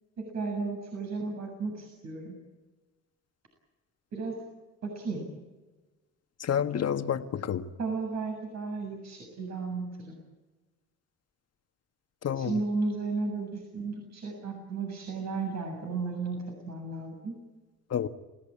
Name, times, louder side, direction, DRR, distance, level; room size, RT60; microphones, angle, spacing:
voice 1, 0.2-2.3 4.1-4.4 4.8-5.3 7.8-10.2 12.4-17.4, right 4 dB, 65° right, 1 dB, 7.3 m, -34 dB
voice 2, 6.4-7.7 12.2-12.6 17.9-18.1, left 8 dB, 55° left, 8 dB, 1.6 m, -29 dB
28.5 x 17.5 x 8.8 m, 1.2 s
cardioid pair, 90°, 30 cm